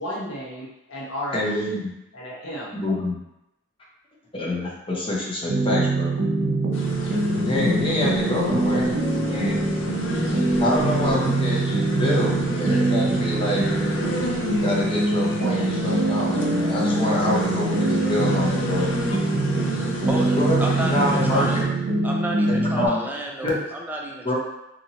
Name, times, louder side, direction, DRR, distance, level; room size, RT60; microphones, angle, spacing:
voice 1, 0.0-1.4 1.7-1.8 2.1-2.8, equal, 90° left, -6 dB, 1.0 m, -33 dB
voice 2, 1.3-1.9 2.7-3.2 4.3-6.1 7.3-9.0 9.2-9.6 10.6-13.6 14.6-19.2 20.4-21.6 22.5-23.0 23.4-23.6 24.2-24.3, left 1 dB, 25° left, -4 dB, 0.7 m, -26 dB
sound 1, 5.5-22.9, right 2 dB, 85° right, 0.6 m, -24 dB
sound 2, 6.7-21.6, left 2 dB, 70° left, 0.5 m, -31 dB
voice 3, 19.4-21.6 22.0-24.3, right 1 dB, 10° right, -1 dB, 0.3 m, -32 dB
2.8 x 2.7 x 2.7 m, 0.89 s
head